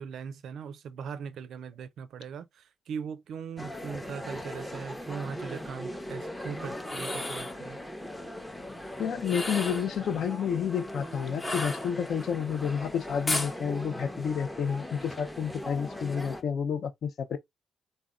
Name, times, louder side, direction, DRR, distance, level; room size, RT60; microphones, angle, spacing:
voice 1, 0.0-7.8, right 6 dB, 70° right, 0.4 m, -40 dB
sound 1, 3.6-16.4, left 1 dB, 10° left, 0.6 m, -40 dB
sound 2, 6.8-7.6 9.2-9.9 11.4-12.3 13.3-13.6, left 2 dB, 35° left, 0.9 m, -33 dB
voice 2, 9.0-17.4, left 7 dB, 65° left, 0.4 m, -30 dB
3.5 x 2.1 x 2.3 m
cardioid pair, 75°, 0 cm